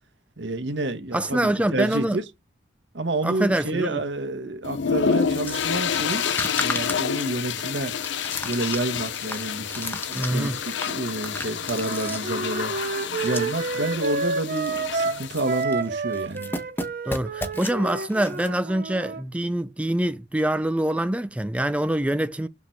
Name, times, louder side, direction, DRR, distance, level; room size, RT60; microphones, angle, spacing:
voice 1, 0.4-2.2 2.9-6.2 6.5-7.9 8.4-10.5 10.8-12.7 13.2-16.5, right 2 dB, 70° right, 1.3 m, -29 dB
voice 2, 1.1-2.2 3.2-4.0 10.1-10.6 17.0-22.5, right 1 dB, 5° right, 0.4 m, -25 dB
sound 1, 4.6-15.6, left 6 dB, 70° left, 0.6 m, -29 dB
sound 2, 5.5-13.8 14.1-14.2 14.5-14.8 15.1-15.9 16.1-18.5, left 2 dB, 10° left, 1.1 m, -35 dB
Wind instrument woodwind instrument, 11.8-19.2, right 4 dB, 50° right, 0.7 m, -30 dB
7.1 x 4.4 x 4.6 m
head